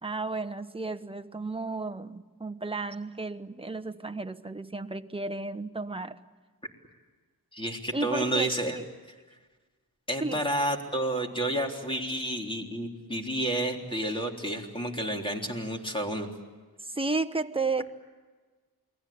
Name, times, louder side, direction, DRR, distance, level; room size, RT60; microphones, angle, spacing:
voice 1, 0.0-6.2 7.9-8.8 10.2-10.4 16.8-17.9, right 3 dB, 15° right, 8 dB, 1.1 m, -33 dB
voice 2, 7.5-8.8 10.1-16.3, right 1 dB, 15° left, 2 dB, 3.6 m, -30 dB
29.0 x 21.0 x 8.6 m, 1.4 s
wide cardioid pair, 100°, 38 cm